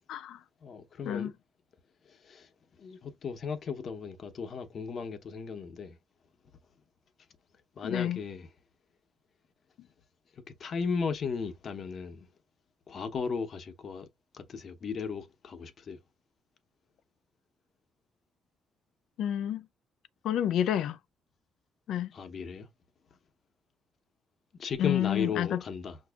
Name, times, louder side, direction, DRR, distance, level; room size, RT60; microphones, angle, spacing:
voice 1, 0.1-0.4 1.0-1.3 7.8-8.2 19.2-19.7 20.2-21.0 21.9-22.1 24.8-25.6, left 10 dB, 80° left, 0.3 m, -29 dB
voice 2, 0.6-1.3 2.0-2.5 2.8-6.0 7.7-8.5 10.3-12.3 12.9-14.1 14.3-16.0 22.1-22.7 24.5-26.0, left 5 dB, 55° left, 0.8 m, -36 dB
5.8 x 2.6 x 2.3 m
cardioid pair, 90°, 0 cm